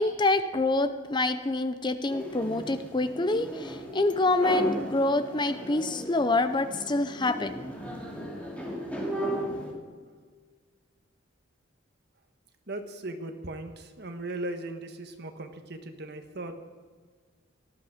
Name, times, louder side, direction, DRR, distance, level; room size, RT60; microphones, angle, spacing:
voice 1, 0.0-7.6, left 2 dB, 20° left, 10 dB, 0.6 m, -26 dB
sound 1, 2.1-9.7, equal, 5° left, 2.6 m, -36 dB
voice 2, 12.7-16.5, right 2 dB, 55° right, 6 dB, 1.5 m, -38 dB
18.5 x 13.5 x 5.0 m, 1.5 s
head